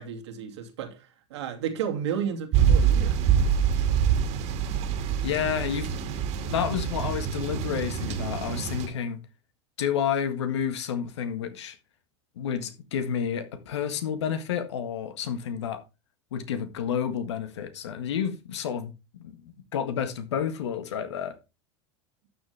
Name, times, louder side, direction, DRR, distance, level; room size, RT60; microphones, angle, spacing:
voice 1, 0.0-3.2, right 8 dB, 75° right, 2.7 m, -32 dB
sound 1, 2.5-8.9, right 8 dB, 50° right, 2.4 m, -25 dB
voice 2, 5.2-5.9 6.4-9.2 9.8-11.8 12.4-15.8 16.3-21.4, left 8 dB, 75° left, 1.7 m, -30 dB
12.5 x 7.3 x 3.5 m
hypercardioid pair, 90°, 14 cm